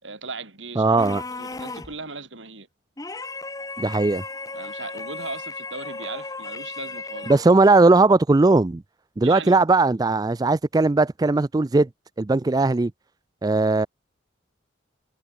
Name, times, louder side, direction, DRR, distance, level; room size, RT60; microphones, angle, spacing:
voice 1, 0.0-1.1 1.4-2.7 4.5-7.3 9.2-9.6, right 3 dB, 80° right, 7.4 m, -37 dB
voice 2, 0.8-1.2 3.8-4.2 7.3-8.8 9.2-11.9 12.2-12.9 13.4-13.9, right 3 dB, 20° right, 0.4 m, -18 dB
sound 1, 1.0-2.0 3.0-7.6, left 3 dB, 20° left, 1.0 m, -35 dB
head